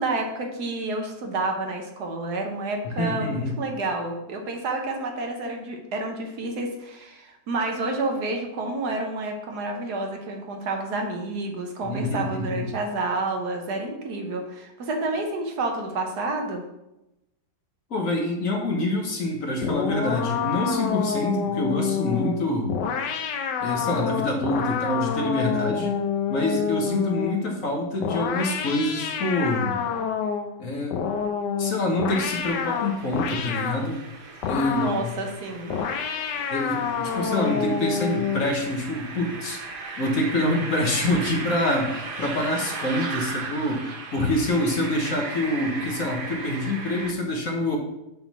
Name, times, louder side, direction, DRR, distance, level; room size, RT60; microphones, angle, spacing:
voice 1, 0.0-16.6 34.6-35.8, right 2 dB, 65° right, 3 dB, 1.5 m, -29 dB
voice 2, 3.0-3.5 11.8-12.6 17.9-22.8 23.6-26.0 26.3-29.8 30.6-31.1 31.6-34.0 34.5-35.2 36.5-39.6 40.0-43.8 44.1-47.8, left 1 dB, 50° left, 1 dB, 1.4 m, -26 dB
sound 1, 19.6-27.4 28.0-30.5 30.9-33.9 34.4-35.1 35.7-38.5, left 7 dB, 75° left, 1.3 m, -28 dB
sound 2, 32.1-47.1, right 3 dB, 45° right, 0.7 m, -37 dB
7.2 x 3.7 x 6.0 m, 0.91 s
omnidirectional pair, 1.9 m